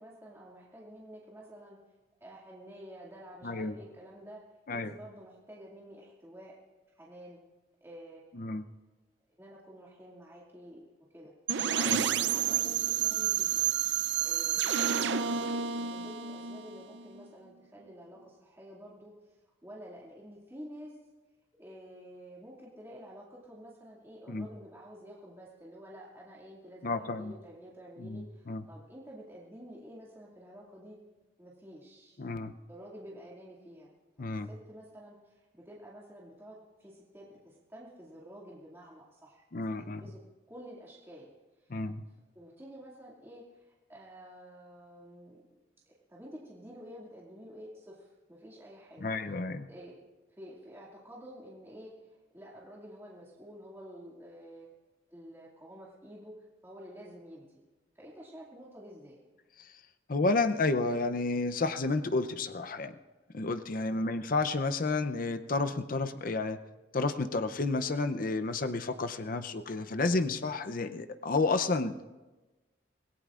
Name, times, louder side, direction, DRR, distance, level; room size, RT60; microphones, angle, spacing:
voice 1, 0.0-1.8 2.2-4.4 4.7-6.5 6.9-7.4 7.8-8.6 9.4-10.8 11.1-11.3 11.7-13.7 14.2-20.9 21.6-31.0 31.4-32.2 32.7-33.9 34.2-39.5 39.8-40.2 40.5-41.8 42.3-45.4 46.1-49.1 49.7-50.0 50.3-54.7 55.1-56.3 56.6-57.6 57.9-59.2 63.9-64.1, equal, 15° right, -6 dB, 2.2 m, -50 dB
voice 2, 3.4-3.7 4.7-4.9 8.3-8.7 11.8-12.0 24.3-24.5 26.8-27.3 28.0-28.6 32.2-32.5 34.2-34.5 39.5-40.0 41.7-42.0 49.0-49.7 60.1-62.9 63.3-66.6 66.9-72.0, left 3 dB, 50° left, 9 dB, 0.6 m, -31 dB
sound 1, 11.5-17.3, right 9 dB, 70° right, 0.5 m, -30 dB
25.5 x 17.5 x 2.5 m, 1.2 s
head